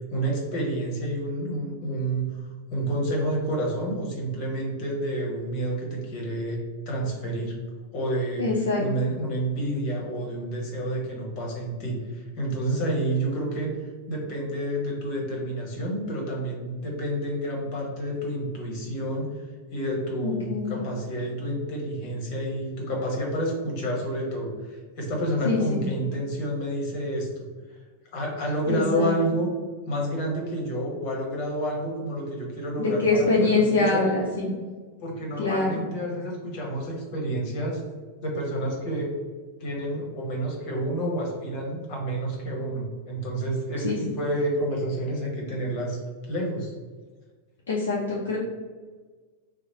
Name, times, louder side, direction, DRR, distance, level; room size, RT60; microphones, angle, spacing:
voice 1, 0.1-2.3 2.7-6.6 6.9-7.6 7.9-13.7 14.1-19.3 19.7-27.3 28.1-29.5 29.9-34.1 35.0-37.8 38.2-39.1 39.6-46.0 46.3-46.7, right 1 dB, 45° left, -2 dB, 1.1 m, -29 dB
voice 2, 8.4-8.8 20.2-20.7 25.4-25.9 28.7-29.1 32.8-34.5 35.4-35.8 43.8-44.0 47.7-48.4, left 3 dB, 65° left, -5 dB, 0.6 m, -24 dB
3.0 x 2.1 x 4.2 m, 1.4 s
figure-of-eight pair, 90°, 0 cm